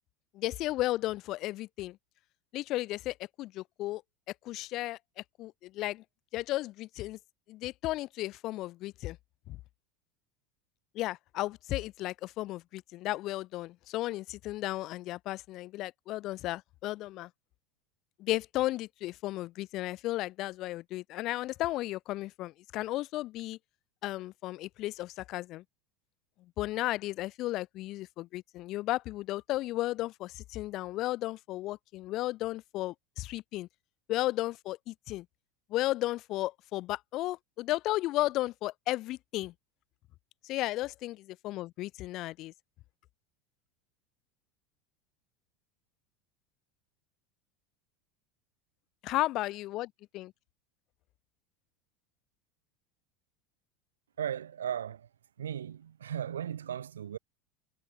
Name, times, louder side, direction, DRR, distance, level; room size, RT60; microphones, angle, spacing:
voice 1, 0.3-2.0 2.5-4.0 4.4-6.0 6.3-7.2 7.5-9.2 9.5-9.6 10.9-17.3 18.2-23.6 24.0-25.6 26.6-33.7 34.1-35.3 35.7-39.5 40.4-41.1 41.4-42.5 49.0-49.9 50.1-50.3, left 17 dB, 45° left, 5.3 m, -34 dB
voice 2, 54.2-55.1 55.4-57.2, right 9 dB, 75° right, 2.8 m, -36 dB
figure-of-eight pair, 80°, 0 cm